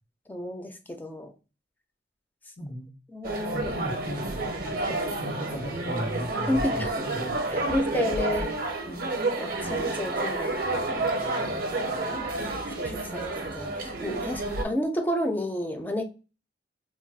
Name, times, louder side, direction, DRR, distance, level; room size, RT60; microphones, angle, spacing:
voice 1, 0.3-1.3 3.1-3.7 6.5-7.1 7.5-10.6 11.4-11.9 12.8-16.0, left 1 dB, 10° left, 6 dB, 0.3 m, -31 dB
voice 2, 2.6-2.9 3.5-7.7, equal, 90° left, -2 dB, 1.1 m, -36 dB
sound 1, 3.2-14.6, right 2 dB, 55° right, 0.5 m, -30 dB
2.3 x 2.1 x 3.9 m, 0.33 s
head